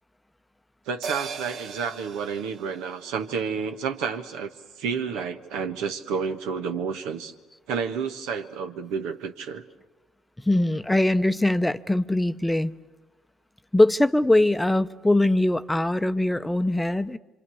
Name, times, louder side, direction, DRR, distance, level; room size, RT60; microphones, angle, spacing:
voice 1, 0.9-4.5 4.8-7.3 7.7-9.6, right 6 dB, 75° right, 1.4 m, -30 dB
sound 1, 1.0-5.7 6.1-6.2, right 6 dB, 60° right, 1.1 m, -41 dB
voice 2, 10.5-12.7 13.7-17.2, left 1 dB, 10° left, 0.8 m, -22 dB
26.0 x 25.5 x 7.1 m
hypercardioid pair, 60°, 0 cm